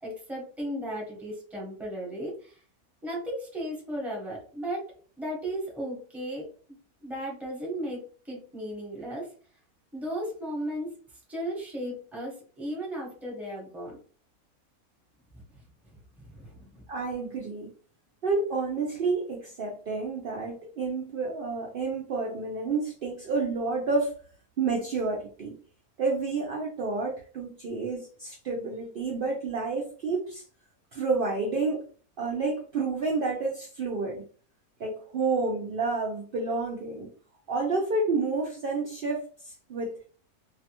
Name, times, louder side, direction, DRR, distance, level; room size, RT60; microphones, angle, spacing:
voice 1, 0.0-2.6 3.0-4.9 5.2-6.5 7.0-9.3 9.9-11.0 11.3-14.0 15.3-15.6 15.9-16.9, equal, ahead, -3 dB, 0.7 m, -35 dB
voice 2, 16.9-17.7 18.2-24.1 24.6-25.6 26.0-30.4 30.9-31.8 32.2-34.3 34.8-37.1 37.5-40.1, right 3 dB, 75° right, -1 dB, 0.5 m, -30 dB
2.7 x 2.1 x 2.8 m, 0.42 s
omnidirectional pair, 1.6 m